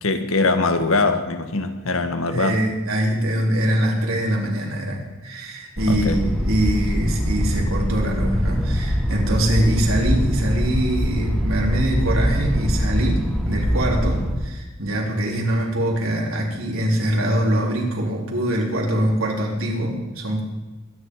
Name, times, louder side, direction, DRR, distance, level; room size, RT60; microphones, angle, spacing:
voice 1, 0.0-2.6 5.9-6.2, left 3 dB, 85° left, 7 dB, 1.5 m, -22 dB
voice 2, 2.3-20.4, right 1 dB, 85° right, -1 dB, 3.8 m, -23 dB
sound 1, 5.8-14.3, equal, 5° left, 2.0 m, -23 dB
22.0 x 10.5 x 4.8 m, 1.2 s
head